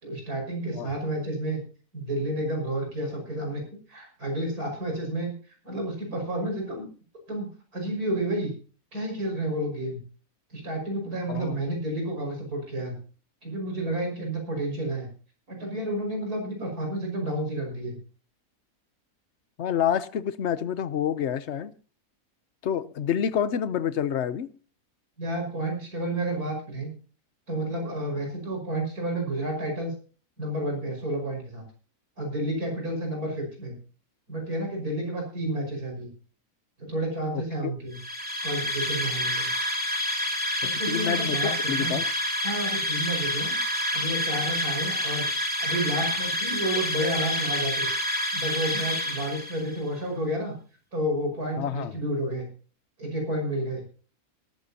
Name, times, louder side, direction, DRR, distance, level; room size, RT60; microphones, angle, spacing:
voice 1, 0.0-1.6 1.9-3.6 3.9-6.9 7.3-8.5 8.9-10.0 10.5-13.0 13.4-15.1 15.5-18.0 25.2-26.9 27.5-29.9 30.4-31.6 32.2-33.7 34.3-36.1 36.8-38.0 38.4-39.5 40.6-42.0 42.4-43.6 43.9-45.3 45.6-47.9 48.3-50.5 50.9-52.5 53.0-53.8, right 1 dB, 85° right, 6.1 m, -30 dB
voice 2, 19.6-21.7 22.6-24.5 37.3-37.4 40.9-42.0 51.6-51.9, left 9 dB, 55° left, 1.0 m, -28 dB
sound 1, 37.9-49.8, left 1 dB, 5° right, 3.0 m, -28 dB
18.5 x 13.5 x 2.8 m
omnidirectional pair, 1.5 m